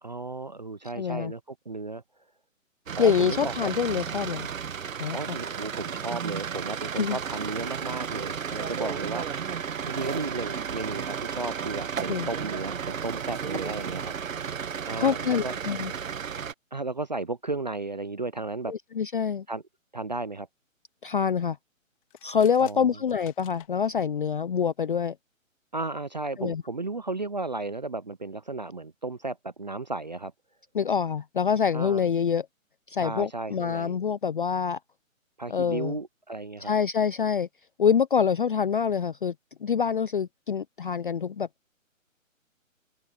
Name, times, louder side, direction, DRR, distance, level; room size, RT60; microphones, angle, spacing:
voice 1, 0.0-2.0 2.9-3.7 5.1-9.4 9.9-14.1 14.8-15.5 16.7-18.7 19.5-19.6 19.9-20.5 22.6-23.0 25.7-30.3 31.7-32.1 33.0-34.0 35.4-36.7, right 3 dB, 35° right, 0.4 m, -34 dB
voice 2, 1.0-1.3 3.0-4.5 5.0-5.2 7.0-7.2 12.1-12.3 14.9-15.9 18.7-19.4 21.0-21.6 22.2-25.1 26.4-26.6 30.7-32.5 32.9-34.8 35.5-36.0 36.6-37.5 37.8-39.3 39.6-41.5, left 7 dB, 40° left, 0.5 m, -26 dB
sound 1, 2.9-16.5, right 7 dB, 75° right, 1.1 m, -33 dB
sound 2, 22.0-23.7, left 19 dB, 25° left, 2.1 m, -53 dB
open air
hypercardioid pair, 150°, 40 cm